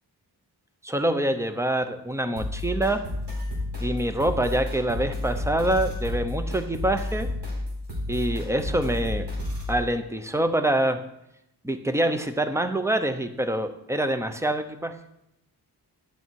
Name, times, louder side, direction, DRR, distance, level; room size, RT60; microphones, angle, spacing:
voice 1, 0.8-3.0 3.8-7.3 8.1-9.3 9.7-11.0 11.6-15.0, right 1 dB, 5° right, 8 dB, 0.8 m, -25 dB
sound 1, 2.4-9.7, left 1 dB, 85° right, 4.2 m, -31 dB
11.5 x 8.5 x 4.7 m, 0.82 s
wide cardioid pair, 125°, 40 cm